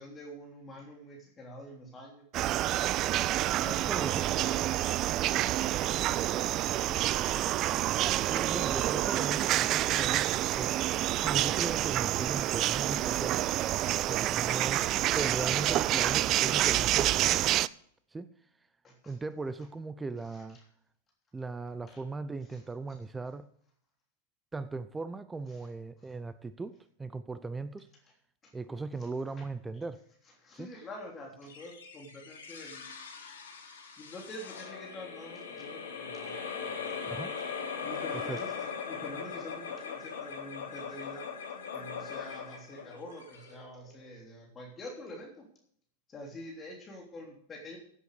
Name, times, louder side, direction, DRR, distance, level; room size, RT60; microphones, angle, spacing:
voice 1, 0.0-2.2 3.6-7.5 13.4-13.6 14.4-14.7 18.8-19.2 20.3-20.4 21.9-22.0 22.5-22.6 25.5-25.7 28.4-28.5 29.4-29.5 30.4-32.9 34.0-36.4 36.6-37.0 37.8-41.3 41.7-45.5 46.1-47.8, left 1 dB, 25° left, 3.2 m, -47 dB
sound 1, 2.3-17.7, right 14 dB, 40° right, 0.4 m, -28 dB
voice 2, 3.9-4.2 8.3-10.9 11.2-13.5 14.1-14.9 15.1-17.5 18.1-18.3 19.1-20.6 21.3-23.5 24.5-27.9 28.5-30.0 30.5-30.7 37.1-37.3 38.3-38.4, right 3 dB, 10° right, 0.7 m, -38 dB
sound 2, 31.5-44.1, left 6 dB, 80° left, 3.8 m, -40 dB
15.5 x 8.1 x 5.0 m
hypercardioid pair, 100°, 0 cm